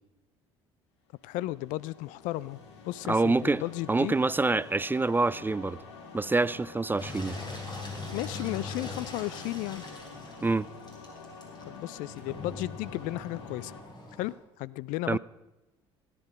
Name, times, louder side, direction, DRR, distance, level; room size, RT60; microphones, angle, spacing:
sound 1, 1.2-13.8, left 4 dB, 85° left, 1.5 m, -47 dB
voice 1, 1.2-2.6 2.8-4.2 8.1-9.8 11.7-13.7 14.2-15.2, left 18 dB, 65° left, 0.4 m, -34 dB
voice 2, 3.1-3.6 3.9-5.8 6.1-7.4 10.4-10.7 15.1-15.2, right 3 dB, 15° right, 0.3 m, -26 dB
Engine, 7.0-14.3, left 3 dB, 30° left, 3.9 m, -41 dB
16.5 x 9.3 x 5.4 m
hypercardioid pair, 55°, 14 cm